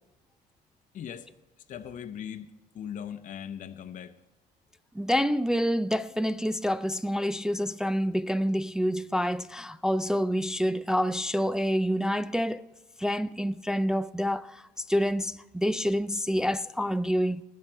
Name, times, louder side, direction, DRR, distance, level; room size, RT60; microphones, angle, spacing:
voice 1, 0.9-1.3 1.7-4.2, left 9 dB, 50° left, 0.7 m, -39 dB
voice 2, 5.0-12.6 13.0-14.6 14.9-17.4, equal, 5° right, 0.3 m, -27 dB
20.0 x 7.5 x 4.5 m
cardioid pair, 110°, 17 cm